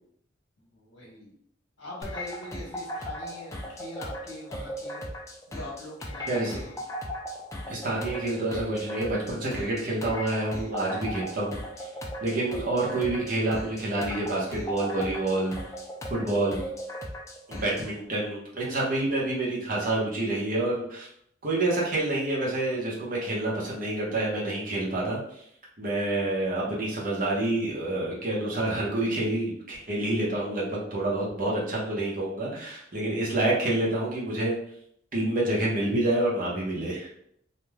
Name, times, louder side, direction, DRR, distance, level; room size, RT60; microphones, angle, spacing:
voice 1, 0.6-1.3 1.8-5.0 5.5-6.8, left 1 dB, 80° left, -3 dB, 1.0 m, -42 dB
sound 1, 2.0-17.9, equal, 15° left, 0.4 m, -37 dB
voice 2, 6.3-6.6 7.7-11.6 12.2-15.5 16.1-16.6 17.5-21.1 21.4-25.2 25.8-34.6 35.1-37.1, right 2 dB, 50° right, -4 dB, 0.9 m, -28 dB
3.2 x 2.6 x 2.2 m, 0.70 s
head